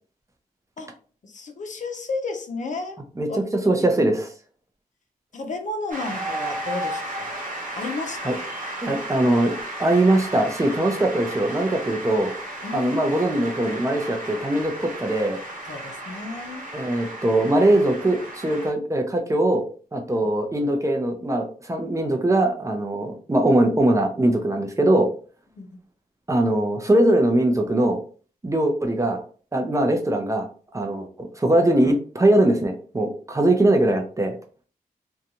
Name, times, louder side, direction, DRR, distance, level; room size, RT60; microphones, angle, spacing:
voice 1, 1.2-3.0 3.3-3.4 3.6-3.7 5.3-7.3 7.8-8.4 12.6-13.0 15.7-16.7 25.6-25.7, left 3 dB, 55° left, 4 dB, 0.5 m, -32 dB
voice 2, 3.2-4.3 8.2-8.4 8.8-12.3 12.7-15.4 16.7-19.6 19.9-25.1 26.3-28.0 28.4-29.2 29.5-30.5 30.7-34.4, right 1 dB, 20° right, 3 dB, 0.5 m, -21 dB
Shout / Cheering / Applause, 5.9-18.7, right 1 dB, 60° right, 1.0 m, -34 dB
2.5 x 2.2 x 2.8 m, 0.40 s
wide cardioid pair, 90°, 15 cm